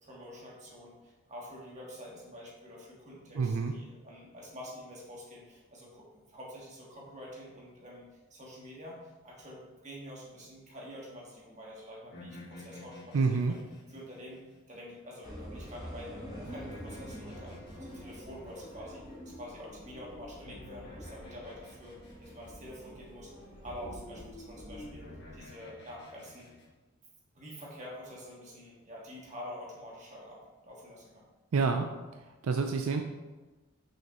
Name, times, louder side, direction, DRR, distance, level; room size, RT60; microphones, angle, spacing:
voice 1, 0.0-13.6 13.9-14.4 14.7-23.3 23.6-26.5 27.3-31.2, equal, 35° right, -4 dB, 1.7 m, -47 dB
voice 2, 3.4-3.8 13.1-13.6 31.5-31.9 32.4-33.0, right 4 dB, 75° right, 5 dB, 0.4 m, -28 dB
sound 1, 12.1-15.0 16.1-19.5 20.5-23.1 24.8-26.6, left 1 dB, 55° left, 1.5 m, -51 dB
sound 2, 15.2-25.5, equal, 20° right, 1.2 m, -47 dB
5.9 x 5.7 x 3.0 m, 1.2 s
head